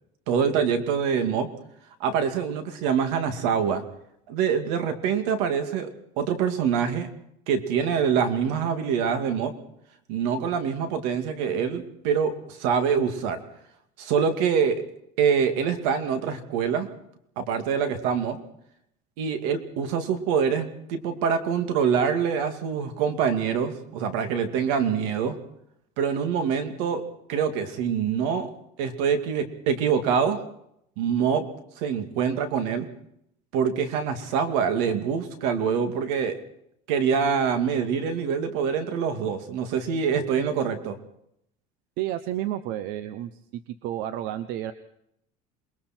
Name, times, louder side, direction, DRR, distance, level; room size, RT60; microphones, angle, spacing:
voice 1, 0.3-1.5 2.0-3.8 4.3-5.9 6.2-7.1 7.5-9.5 10.1-13.4 14.0-14.8 15.2-16.9 17.4-18.4 19.2-25.3 26.0-27.0 27.3-28.5 28.8-30.4 31.0-31.4 31.8-32.9 33.5-36.4 36.9-41.0, right 7 dB, 80° right, 8 dB, 2.5 m, -25 dB
voice 2, 42.0-44.7, right 12 dB, 60° right, 12 dB, 0.9 m, -31 dB
28.0 x 21.0 x 4.5 m, 0.75 s
cardioid pair, 160°, 18 cm